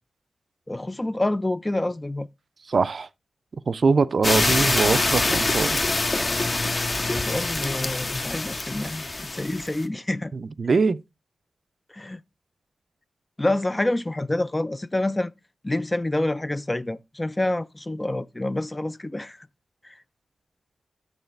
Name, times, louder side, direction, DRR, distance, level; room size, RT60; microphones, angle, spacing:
voice 1, 0.7-2.3 7.1-10.3 11.9-12.2 13.4-15.3 15.6-19.5 19.8-20.0, left 1 dB, 15° left, 0.3 m, -27 dB
voice 2, 2.7-3.1 3.7-5.8 10.3-11.0, right 4 dB, 50° right, 0.4 m, -22 dB
sound 1, 4.2-9.8, left 2 dB, 35° left, 0.8 m, -25 dB
8.0 x 7.3 x 3.2 m
wide cardioid pair, 105°, 0 cm